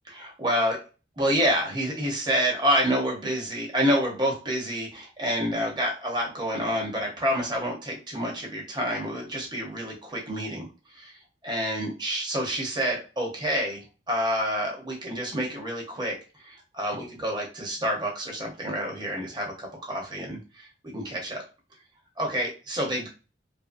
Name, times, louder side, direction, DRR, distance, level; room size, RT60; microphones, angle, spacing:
voice 1, 0.1-0.8 1.2-10.7 10.9-11.2 11.4-21.4 22.2-23.1, equal, 25° right, 0 dB, 0.8 m, -28 dB
2.8 x 2.6 x 2.5 m, 0.33 s
head